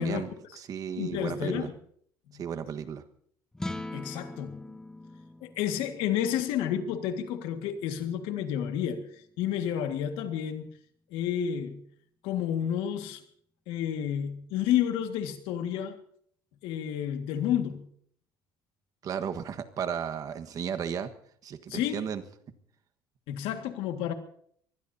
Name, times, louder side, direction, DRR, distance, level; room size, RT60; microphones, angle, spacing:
voice 1, 0.0-1.7 2.3-3.0 19.0-21.1 21.4-22.2, right 8 dB, 45° right, 10 dB, 1.4 m, -34 dB
voice 2, 1.0-1.7 3.9-4.7 5.4-9.1 9.4-10.7 11.1-11.8 12.2-13.2 13.7-16.0 16.6-17.9 21.7-22.0 23.3-24.1, left 10 dB, 85° left, 7 dB, 1.9 m, -30 dB
sound 1, 3.5-9.9, left 2 dB, 5° left, 0.8 m, -44 dB
24.5 x 20.0 x 2.8 m, 0.62 s
cardioid pair, 140°, 9 cm